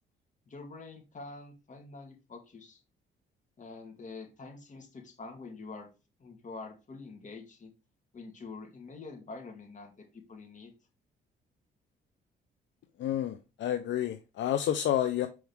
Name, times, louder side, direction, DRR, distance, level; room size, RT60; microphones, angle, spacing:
voice 1, 0.5-2.8 3.6-5.9 6.2-7.7 8.1-10.7, left 3 dB, 40° left, 2.2 m, -46 dB
voice 2, 13.0-15.3, left 11 dB, 70° left, 0.7 m, -30 dB
6.2 x 4.6 x 3.6 m
cardioid pair, 90°, 20 cm